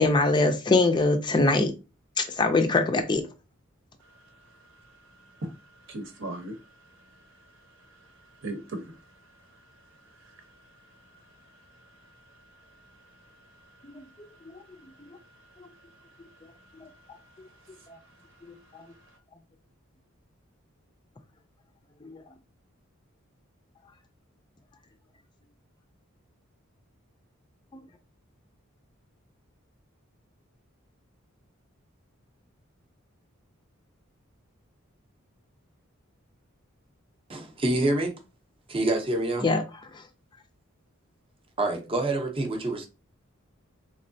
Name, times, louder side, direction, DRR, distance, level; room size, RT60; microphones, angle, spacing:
voice 1, 0.0-1.7 2.2-3.2 18.7-18.8 22.0-22.2 39.4-39.6, left 3 dB, 20° left, 0.4 m, -22 dB
voice 2, 4.0-19.2, right 1 dB, 60° right, 0.9 m, -46 dB
voice 3, 37.3-38.1 38.7-39.5 41.6-42.9, right 2 dB, 25° right, 0.6 m, -26 dB
3.6 x 3.1 x 2.6 m
head